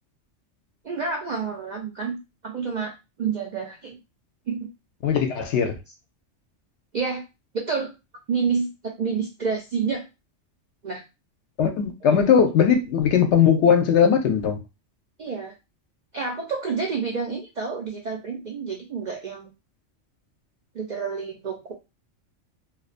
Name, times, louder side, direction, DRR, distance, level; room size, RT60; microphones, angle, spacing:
voice 1, 0.8-2.2 2.4-2.9 3.2-4.0 4.5-4.7 6.9-7.2 7.5-7.9 8.3-10.1 10.8-11.0 15.2-15.5 16.1-19.5 20.7-21.7, right 5 dB, 65° right, 0.4 m, -28 dB
voice 2, 5.0-5.7 11.6-14.6, left 7 dB, 70° left, 0.8 m, -19 dB
2.5 x 2.1 x 2.4 m
omnidirectional pair, 1.3 m